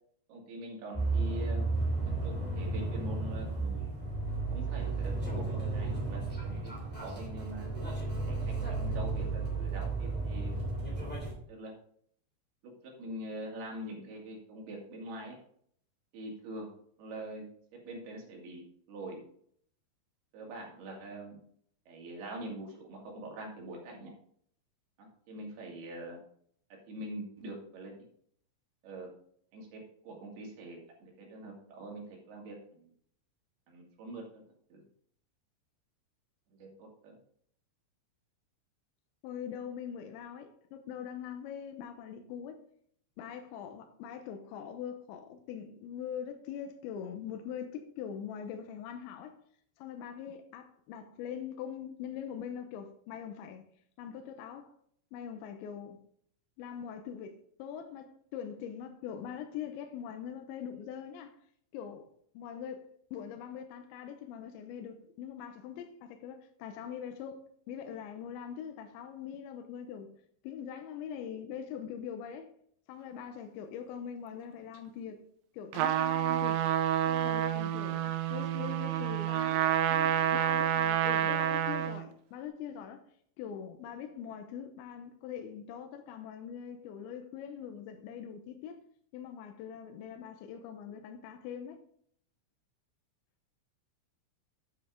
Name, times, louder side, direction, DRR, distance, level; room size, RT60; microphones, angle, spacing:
voice 1, 0.3-1.7 2.0-4.0 4.5-5.4 5.7-7.7 8.3-10.5 11.0-11.2 11.5-11.7 12.6-15.4 16.1-16.7 17.0-18.6 18.9-19.2 20.3-21.4 21.9-24.1 25.0-26.2 26.9-27.9 28.8-29.1 29.5-32.9 33.7-34.4 34.7-34.8 36.5-37.2, right 1 dB, 60° right, 3.8 m, -44 dB
sound 1, 0.9-11.3, right 3 dB, 5° left, 1.1 m, -33 dB
voice 2, 39.2-42.6 43.2-49.4 49.8-53.6 54.0-54.7 55.1-56.0 56.6-61.3 61.7-62.1 62.3-70.2 70.4-72.5 72.9-75.2 75.5-76.6 77.1-83.0 83.4-88.8 89.1-91.8, left 8 dB, 80° left, 3.0 m, -42 dB
Trumpet, 75.7-82.0, right 10 dB, 80° right, 2.8 m, -29 dB
9.3 x 5.9 x 5.1 m
omnidirectional pair, 5.5 m